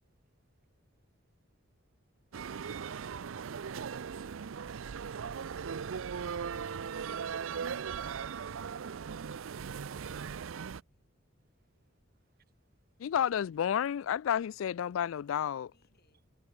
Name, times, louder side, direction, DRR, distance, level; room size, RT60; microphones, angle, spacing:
voice 1, 0.3-1.3 1.6-2.3 11.4-11.7 12.3-13.1, right 6 dB, 50° right, 1.3 m, -82 dB
sound 1, 2.3-10.8, right 6 dB, 80° right, 0.5 m, -38 dB
voice 2, 10.0-11.1 15.7-16.4, left 3 dB, 55° left, 5.2 m, -72 dB
voice 3, 13.0-15.7, left 9 dB, 80° left, 0.3 m, -31 dB
head